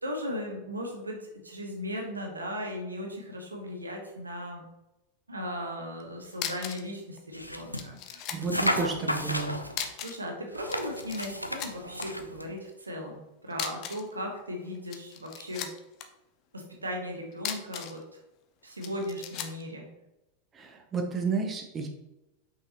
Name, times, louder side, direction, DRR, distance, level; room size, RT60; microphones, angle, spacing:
voice 1, 0.0-4.6 5.3-8.3 10.0-15.7 16.5-18.2 18.6-19.9, equal, 80° right, 1 dB, 1.2 m, -37 dB
sound 1, 6.0-6.1 6.3-6.9 7.2-7.3 7.7-8.8 9.7-10.3 10.6-11.3 11.6-12.1 13.5-14.1 14.7-16.1 17.3-18.0 18.8-19.6, left 9 dB, 40° left, 0.6 m, -37 dB
sound 2, 7.3-7.9 8.4-9.9 10.5-12.5, equal, 90° left, 0.5 m, -33 dB
voice 2, 8.3-9.6 20.5-21.9, right 4 dB, 20° right, 4 dB, 0.8 m, -31 dB
5.9 x 5.5 x 2.9 m, 0.95 s
figure-of-eight pair, 90°, 0 cm